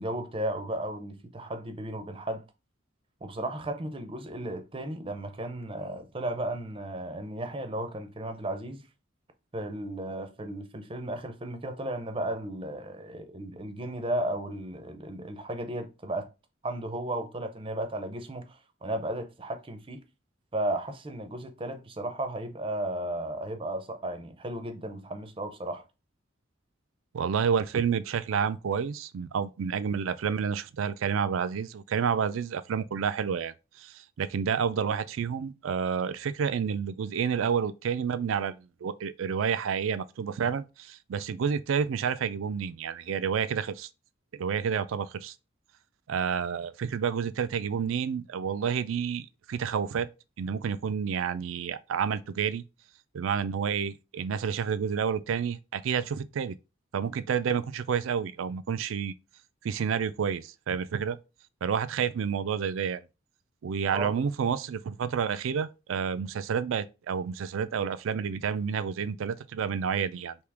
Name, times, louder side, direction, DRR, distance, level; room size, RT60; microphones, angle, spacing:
voice 1, 0.0-2.4 3.2-8.8 9.5-16.3 16.6-20.0 20.5-25.8 63.9-64.2, right 1 dB, 25° right, 0.5 m, -34 dB
voice 2, 27.1-43.9 44.3-45.3 46.1-50.1 50.4-52.6 53.1-56.6 56.9-59.1 59.6-61.2 61.6-63.0 63.6-70.4, right 7 dB, 75° right, 0.4 m, -29 dB
3.5 x 2.8 x 4.6 m
head